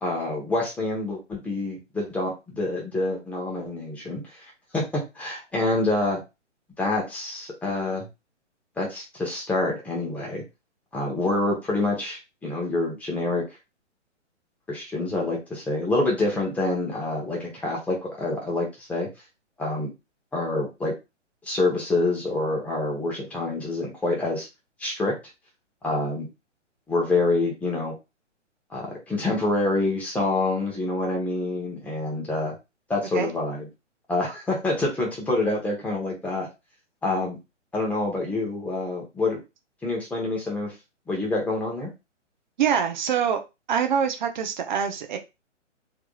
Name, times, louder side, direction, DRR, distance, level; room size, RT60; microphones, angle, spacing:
voice 1, 0.0-4.2 4.7-6.2 6.8-8.1 8.8-10.4 10.9-13.4 14.7-19.1 19.6-19.9 20.3-20.9 21.4-24.5 24.8-25.1 25.8-26.3 26.9-27.9 28.7-32.5 32.9-33.7 34.1-36.5 37.0-37.4 37.7-39.4 39.8-40.7 41.1-41.9, left 2 dB, 5° left, -2 dB, 0.9 m, -26 dB
voice 2, 42.6-43.4 43.7-45.2, right 7 dB, 40° right, 6 dB, 0.8 m, -24 dB
3.5 x 3.3 x 2.3 m, 0.25 s
hypercardioid pair, 140°, 37 cm